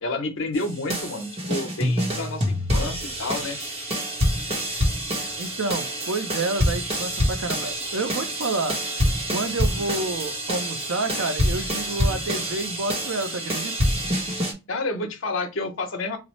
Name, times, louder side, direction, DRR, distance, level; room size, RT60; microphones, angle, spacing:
voice 1, 0.0-3.6 14.7-16.2, left 2 dB, 65° left, 0.8 m, -29 dB
sound 1, 0.5-14.5, equal, 30° right, 0.9 m, -26 dB
voice 2, 5.4-8.8 9.3-13.7, right 3 dB, 75° right, 0.6 m, -29 dB
4.1 x 2.1 x 3.0 m
head